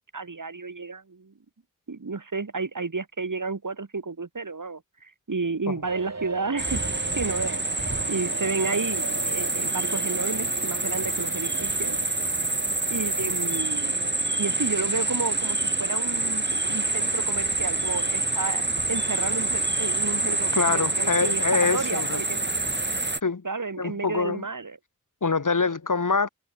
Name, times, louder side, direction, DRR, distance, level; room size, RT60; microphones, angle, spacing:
voice 1, 0.1-1.3 1.9-6.9 7.2-12.0 12.9-14.0 14.4-22.4 23.4-24.8, right 4 dB, 80° right, 6.4 m, -32 dB
sound 1, 5.8-16.0, right 3 dB, 55° right, 3.5 m, -40 dB
sound 2, 6.6-23.2, right 2 dB, 35° right, 5.5 m, -27 dB
voice 2, 20.5-22.2 23.2-23.5 23.8-24.4 25.2-26.3, left 4 dB, 80° left, 4.1 m, -25 dB
wide cardioid pair, 65°, 31 cm